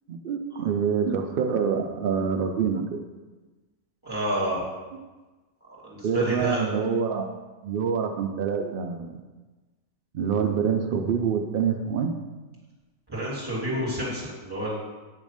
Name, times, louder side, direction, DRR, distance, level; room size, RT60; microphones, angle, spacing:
voice 1, 0.1-3.0 6.0-7.3 7.6-9.1 10.1-12.1, right 6 dB, 90° right, 5 dB, 0.4 m, -26 dB
voice 2, 4.0-4.6 5.7-6.6 13.1-14.7, right 1 dB, 15° right, -6 dB, 2.1 m, -29 dB
8.4 x 3.1 x 5.1 m, 1.2 s
omnidirectional pair, 1.5 m